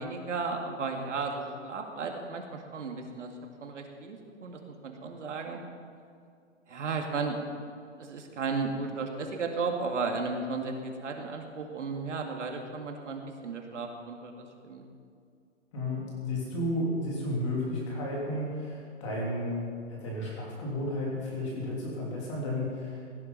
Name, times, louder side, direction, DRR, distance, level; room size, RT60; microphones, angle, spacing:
voice 1, 0.0-3.3 3.6-5.6 6.7-7.4 8.0-14.8, right 4 dB, 75° right, 2 dB, 2.3 m, -34 dB
voice 2, 15.7-23.0, left 1 dB, 25° left, -3 dB, 3.1 m, -33 dB
17.0 x 10.5 x 5.4 m, 2.3 s
hypercardioid pair, 175°, 36 cm